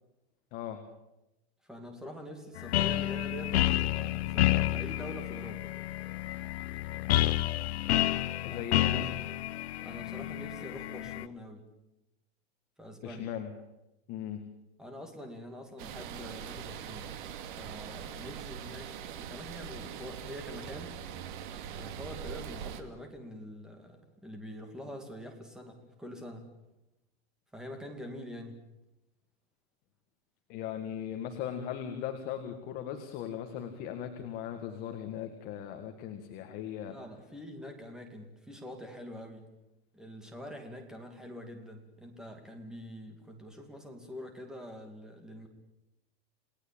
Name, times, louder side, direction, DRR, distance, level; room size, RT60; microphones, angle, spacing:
voice 1, 0.5-0.8 8.4-9.3 13.0-13.5 14.1-14.4 30.5-37.0, left 9 dB, 30° left, 6 dB, 1.8 m, -38 dB
voice 2, 1.6-5.7 8.5-8.7 9.8-11.6 12.8-13.3 14.8-17.1 17.6-21.0 21.7-26.5 27.5-28.6 36.9-39.5 39.9-45.5, equal, ahead, 4 dB, 2.4 m, -45 dB
sound 1, 2.6-11.3, left 14 dB, 80° left, 1.0 m, -30 dB
sound 2, 15.8-22.8, right 8 dB, 50° right, 2.3 m, -42 dB
29.0 x 18.0 x 8.8 m, 0.93 s
supercardioid pair, 180°, 32 cm